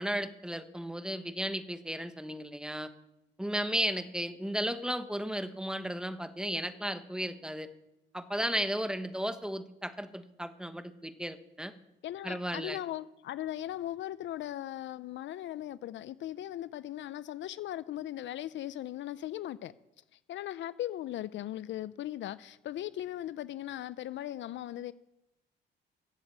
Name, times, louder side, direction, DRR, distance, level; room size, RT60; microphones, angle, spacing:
voice 1, 0.0-2.9 3.4-7.7 8.1-11.7 12.2-12.8, equal, 5° right, 1.1 m, -34 dB
voice 2, 12.0-19.7 20.3-24.9, left 13 dB, 70° left, 0.5 m, -38 dB
13.0 x 7.8 x 8.1 m
cardioid pair, 90°, 20 cm